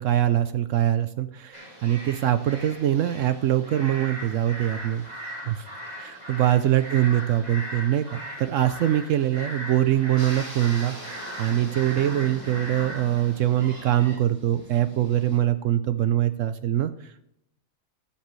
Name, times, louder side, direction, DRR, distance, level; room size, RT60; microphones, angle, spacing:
voice 1, 0.0-5.0 5.4-5.6 6.0-17.4, right 12 dB, 70° right, 11 dB, 0.9 m, -23 dB
sound 1, 1.5-14.2, equal, 30° right, 2.8 m, -39 dB
sound 2, 10.2-15.4, equal, 10° right, 2.6 m, -43 dB
20.0 x 7.3 x 3.1 m, 0.77 s
omnidirectional pair, 1.4 m